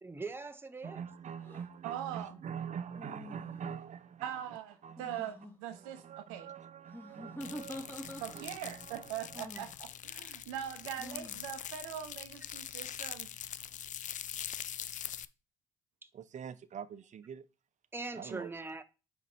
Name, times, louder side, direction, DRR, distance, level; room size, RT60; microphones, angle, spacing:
voice 1, 0.0-1.0 16.0-16.1 17.9-18.8, right 3 dB, 15° right, 0.7 m, -41 dB
voice 2, 0.8-4.3 4.8-5.2 5.7-9.4 16.1-17.4 18.1-18.5, right 7 dB, 45° right, 0.7 m, -44 dB
sound 1, 1.4-1.7 3.0-3.8 5.0-5.5 6.9-8.6 9.3-9.8 11.0-11.5, equal, 10° left, 1.8 m, -46 dB
voice 3, 1.8-2.4 4.2-6.5 8.2-13.3, right 10 dB, 80° right, 0.8 m, -42 dB
sound 2, 7.4-15.3, left 10 dB, 50° left, 0.4 m, -43 dB
6.7 x 4.9 x 4.4 m
hypercardioid pair, 50°, 17 cm